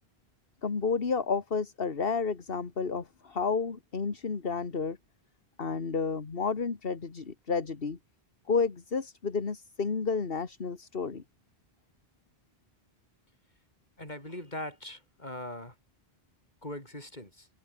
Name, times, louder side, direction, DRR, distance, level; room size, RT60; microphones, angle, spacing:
voice 1, 0.6-5.0 5.6-8.0 8.5-11.2, left 5 dB, 65° left, 1.9 m, -31 dB
voice 2, 14.0-15.8 16.6-17.5, left 1 dB, 45° left, 6.4 m, -41 dB
omnidirectional pair, 1.0 m